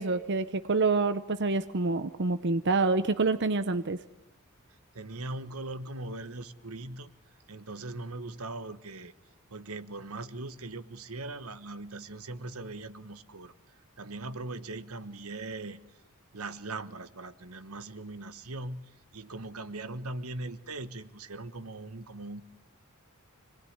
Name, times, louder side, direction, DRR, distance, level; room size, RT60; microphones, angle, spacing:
voice 1, 0.0-4.0, right 3 dB, 55° right, 11 dB, 0.8 m, -27 dB
voice 2, 4.9-7.1 7.5-9.1 9.5-15.8 16.3-22.4, right 2 dB, 85° right, 13 dB, 1.3 m, -40 dB
26.0 x 20.0 x 9.6 m, 0.90 s
head